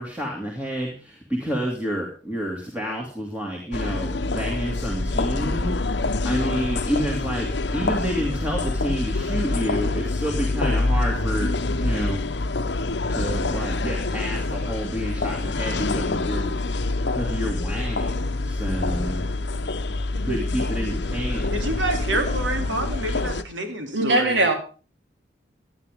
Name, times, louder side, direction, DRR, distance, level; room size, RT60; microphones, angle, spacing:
voice 1, 0.0-12.2 13.1-16.5 17.1-19.2 20.2-21.7, equal, 10° right, -1 dB, 2.4 m, -29 dB
sound 1, 3.7-23.4, left 2 dB, 65° left, 0.9 m, -26 dB
voice 2, 21.5-24.4, right 1 dB, 90° right, 5 dB, 3.1 m, -28 dB
voice 3, 23.9-24.5, right 2 dB, 70° right, 4 dB, 3.6 m, -20 dB
17.0 x 11.0 x 3.6 m, 0.36 s
head